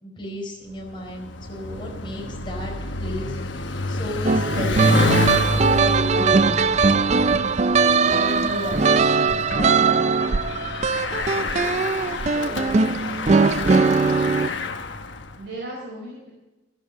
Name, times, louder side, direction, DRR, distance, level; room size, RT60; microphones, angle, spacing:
voice 1, 0.0-2.7 3.0-6.5 7.1-7.4 8.1-8.8 9.2-10.4, left 1 dB, 25° left, -1 dB, 4.4 m, -35 dB
Bicycle, 0.8-15.4, left 3 dB, 80° left, 1.0 m, -29 dB
sound 1, 4.2-14.5, right 4 dB, 35° right, 0.4 m, -20 dB
voice 2, 12.3-12.9 13.3-13.9 15.3-16.3, right 1 dB, 60° right, -4 dB, 4.3 m, -37 dB
13.5 x 11.0 x 6.5 m, 1.1 s
head